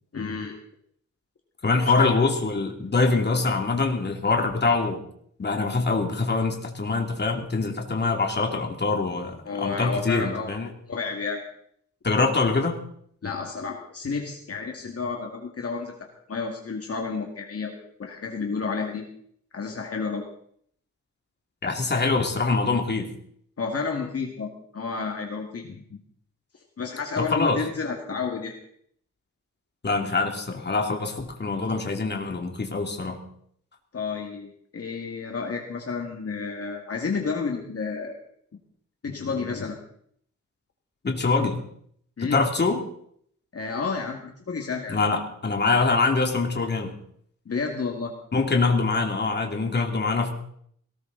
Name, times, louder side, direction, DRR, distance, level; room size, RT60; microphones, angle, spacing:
voice 1, 0.1-0.5 1.8-2.1 9.4-10.5 10.9-11.4 13.2-15.9 16.3-19.1 19.5-20.2 23.6-25.8 26.8-28.6 33.9-38.2 39.0-39.8 42.2-42.4 43.5-45.0 47.5-48.1, left 4 dB, 50° left, 1 dB, 2.0 m, -31 dB
voice 2, 1.6-5.0 5.4-10.7 12.0-12.8 21.6-23.1 27.2-27.6 29.8-33.2 41.0-41.6 42.2-42.8 44.9-46.9 48.3-50.3, left 3 dB, 35° left, 3 dB, 2.5 m, -24 dB
18.5 x 18.0 x 3.9 m, 0.65 s
wide cardioid pair, 155°, 31 cm